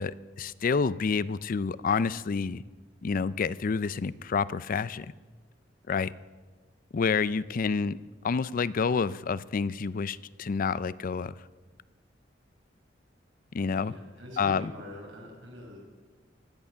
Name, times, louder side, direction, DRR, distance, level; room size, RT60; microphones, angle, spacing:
voice 1, 0.0-2.6 3.0-5.1 5.9-6.1 6.9-8.0 8.2-11.3 13.5-13.9 14.4-14.7, left 5 dB, 45° left, 18 dB, 0.4 m, -28 dB
voice 2, 13.8-15.8, equal, 85° right, -1 dB, 5.0 m, -44 dB
16.0 x 10.5 x 6.9 m, 1.3 s
head